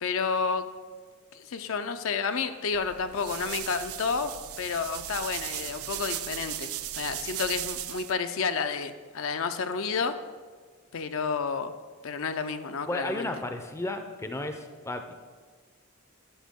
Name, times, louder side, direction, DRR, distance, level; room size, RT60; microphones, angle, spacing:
voice 1, 0.0-0.7 1.3-4.3 4.6-6.7 7.0-10.1 10.9-11.7 12.0-13.3, left 5 dB, 65° left, 9 dB, 0.5 m, -30 dB
sound 1, 2.7-8.1, right 13 dB, 80° right, 0.4 m, -37 dB
voice 2, 12.9-15.1, left 1 dB, 15° left, 6 dB, 0.5 m, -33 dB
11.5 x 6.6 x 3.6 m, 1.5 s
head